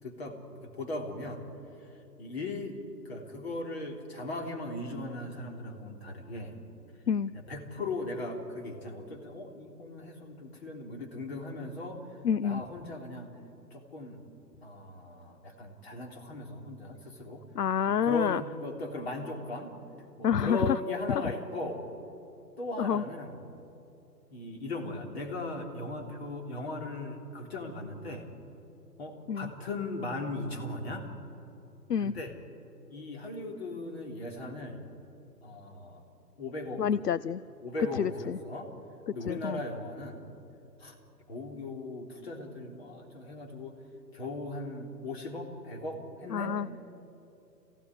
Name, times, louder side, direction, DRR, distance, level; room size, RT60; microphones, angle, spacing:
voice 1, 0.0-1.5 1.8-2.8 3.0-6.6 7.3-13.4 13.7-14.2 14.6-17.4 17.8-19.8 20.2-21.8 22.6-23.5 24.3-28.3 29.0-31.1 32.0-32.3 32.9-34.8 35.4-36.0 36.4-36.9 37.6-38.7 39.1-40.2 40.8-41.0 41.3-43.8 44.1-46.6, left 2 dB, 40° left, 1 dB, 3.5 m, -38 dB
voice 2, 12.2-12.6 17.5-18.4 20.2-20.8 21.1-21.2 22.8-23.0 29.3-29.5 31.9-32.1 36.8-37.4 37.9-38.4 39.1-39.6 46.3-46.7, left 8 dB, 70° left, 17 dB, 0.6 m, -28 dB
26.5 x 16.5 x 9.7 m, 2.9 s
figure-of-eight pair, 140°, 50 cm